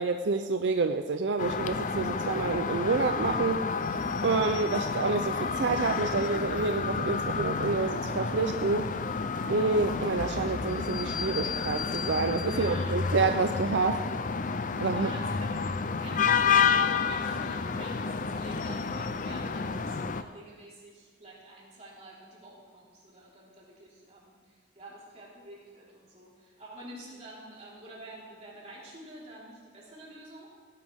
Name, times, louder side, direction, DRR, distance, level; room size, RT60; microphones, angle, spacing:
voice 1, 0.0-3.7 4.2-8.9 9.5-14.0 14.8-15.1, right 4 dB, 80° right, 6 dB, 0.5 m, -28 dB
sound 1, 1.4-20.2, left 5 dB, 45° left, 0.5 m, -30 dB
voice 2, 12.4-13.0 14.7-15.5 16.0-30.5, right 1 dB, 40° right, -6 dB, 4.1 m, -48 dB
17.5 x 11.5 x 3.6 m, 1.5 s
head